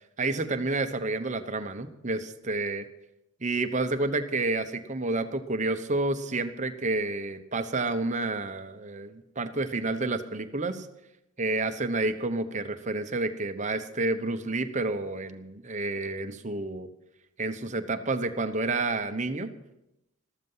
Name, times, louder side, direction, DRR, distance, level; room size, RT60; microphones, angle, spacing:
voice 1, 0.2-2.9 3.4-10.9 11.4-16.9 17.4-19.5, right 2 dB, 35° right, 9 dB, 1.0 m, -29 dB
13.5 x 13.5 x 5.6 m, 0.88 s
head